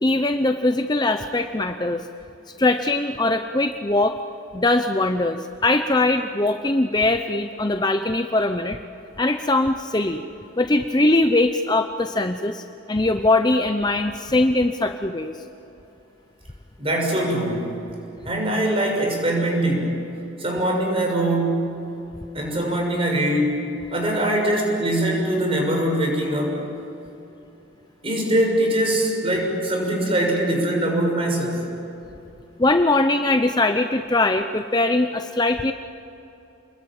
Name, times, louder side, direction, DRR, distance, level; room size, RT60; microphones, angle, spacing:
voice 1, 0.0-2.1 2.6-4.2 4.5-8.8 9.2-10.2 10.6-15.3 32.6-35.7, left 2 dB, 20° left, 7 dB, 0.7 m, -21 dB
voice 2, 16.8-17.8 18.2-20.1 20.4-21.9 22.3-23.6 23.9-26.6 28.0-31.7, right 1 dB, 30° right, 1 dB, 6.4 m, -22 dB
30.0 x 21.5 x 9.0 m, 2.9 s
head